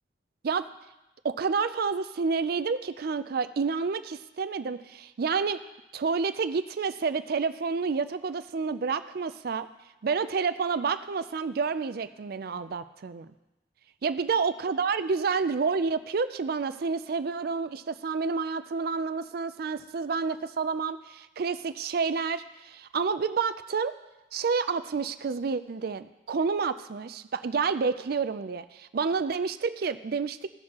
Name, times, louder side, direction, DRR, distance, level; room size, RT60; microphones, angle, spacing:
voice 1, 1.2-5.6 5.9-9.7 10.0-13.3 14.0-23.9 24.3-30.5, right 5 dB, 55° right, 13 dB, 0.4 m, -29 dB
16.5 x 6.5 x 2.9 m, 1.0 s
head